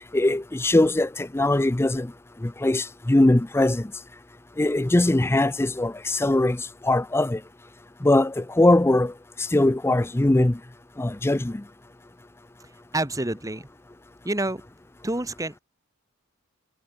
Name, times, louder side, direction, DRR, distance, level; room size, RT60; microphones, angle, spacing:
voice 1, 0.1-2.1 2.4-3.9 4.6-6.6 6.8-7.4 8.0-9.1 9.5-10.6 11.0-11.6, left 1 dB, 10° left, 0.5 m, -21 dB
voice 2, 12.9-13.7 14.2-14.6 15.0-15.6, right 2 dB, 15° right, 2.1 m, -28 dB
head